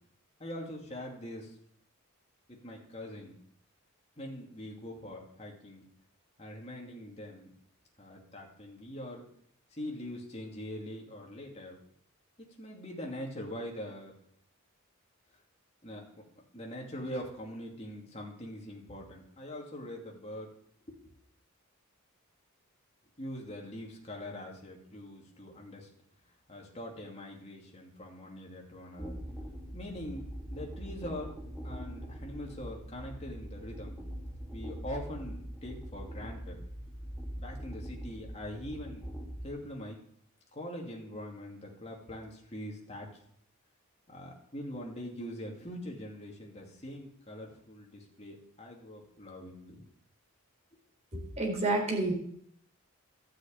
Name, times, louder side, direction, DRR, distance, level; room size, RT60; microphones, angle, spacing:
voice 1, 0.4-1.5 2.5-3.4 4.2-5.8 6.4-7.5 8.0-9.2 9.7-11.8 12.4-14.1 15.8-16.2 16.5-20.5 20.9-21.1 23.2-25.9 26.5-29.2 29.7-30.2 30.5-31.3 31.6-34.0 34.5-36.6 37.4-39.1 39.4-40.0 40.5-43.2 44.1-49.8, left 1 dB, 30° left, -1 dB, 2.5 m, -43 dB
sound 1, 29.0-39.4, equal, ahead, 1.7 m, -42 dB
voice 2, 51.1-52.2, right 2 dB, 30° right, 0 dB, 4.0 m, -29 dB
12.5 x 6.5 x 8.8 m, 0.67 s
head